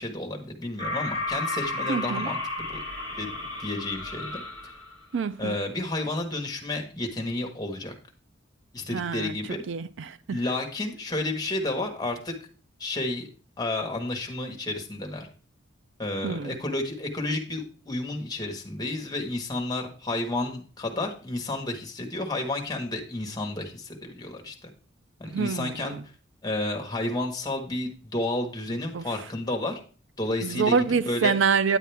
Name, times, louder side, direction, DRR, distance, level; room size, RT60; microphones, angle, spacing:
voice 1, 0.0-2.8 3.1-3.3 3.6-4.4 5.4-7.9 8.7-9.6 10.3-12.3 12.8-13.3 13.6-15.3 16.0-24.7 25.2-25.9 26.4-29.8 30.2-30.8 31.1-31.3, left 2 dB, 20° left, 1.4 m, -31 dB
sound 1, 0.8-5.0, left 2 dB, 25° right, 3.9 m, -33 dB
voice 2, 1.9-2.3 5.1-5.6 8.9-9.4 9.7-10.4 16.2-16.5 25.2-26.0 28.9-29.0 30.4-31.8, right 5 dB, 70° right, 0.4 m, -26 dB
9.8 x 8.4 x 3.4 m
head